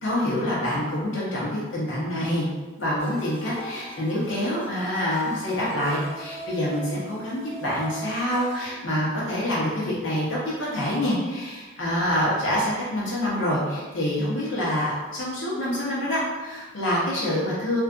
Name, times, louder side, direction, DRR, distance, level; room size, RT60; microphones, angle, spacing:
voice 1, 0.0-2.4 2.8-17.8, left 1 dB, 65° left, -7 dB, 0.9 m, -26 dB
sound 1, 3.0-8.6, right 1 dB, 35° left, 1.1 m, -41 dB
3.4 x 2.4 x 2.5 m, 1.2 s
head